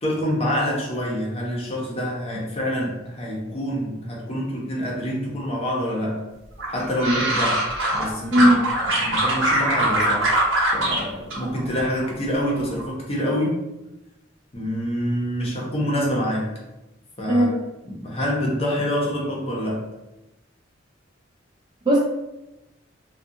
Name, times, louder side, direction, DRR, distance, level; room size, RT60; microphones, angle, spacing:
voice 1, 0.0-6.2 6.7-8.5 9.0-10.3 10.7-13.6 14.5-16.5 17.2-17.5 17.8-19.8, equal, 30° left, -3 dB, 0.7 m, -26 dB
sound 1, 6.6-8.1 8.3-11.0 11.3-12.1 12.4-12.8, right 1 dB, 85° right, 1.0 m, -22 dB
voice 2, 8.3-8.7 17.3-17.6 21.9-22.0, equal, 25° right, -1 dB, 0.3 m, -17 dB
2.4 x 2.3 x 2.7 m, 0.97 s
head